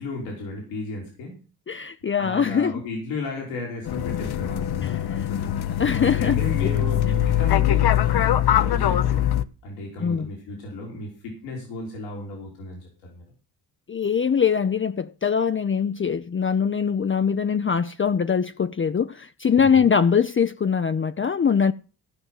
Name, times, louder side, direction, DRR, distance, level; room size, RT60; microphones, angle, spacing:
voice 1, 0.0-1.4 2.2-9.3 9.6-13.2 19.6-19.9, left 2 dB, 90° left, 3.7 m, -34 dB
voice 2, 1.7-2.7 5.1-5.2 5.8-6.4 10.0-10.3 13.9-21.7, left 6 dB, 30° left, 0.6 m, -22 dB
sound 1, 3.9-9.4, left 11 dB, 60° left, 0.9 m, -22 dB
14.5 x 5.4 x 7.6 m
supercardioid pair, 50°, 43 cm